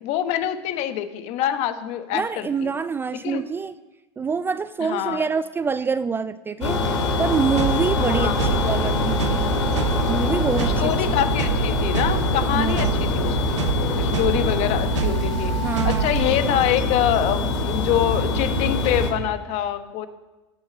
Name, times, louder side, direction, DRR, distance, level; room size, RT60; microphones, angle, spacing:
voice 1, 0.0-2.7 3.2-3.4 4.8-5.3 8.0-8.6 10.6-20.1, left 11 dB, 50° left, 10 dB, 1.2 m, -25 dB
voice 2, 2.1-3.7 4.2-6.8 7.2-9.4 10.1-11.1 12.5-13.0 15.6-16.1 16.4-16.6, right 5 dB, 15° right, 14 dB, 0.4 m, -26 dB
sound 1, 6.6-19.1, left 3 dB, 85° left, 2.9 m, -24 dB
sound 2, 7.6-16.3, right 10 dB, 90° right, 0.6 m, -28 dB
17.5 x 6.4 x 6.2 m, 1.1 s
hypercardioid pair, 110°, 15 cm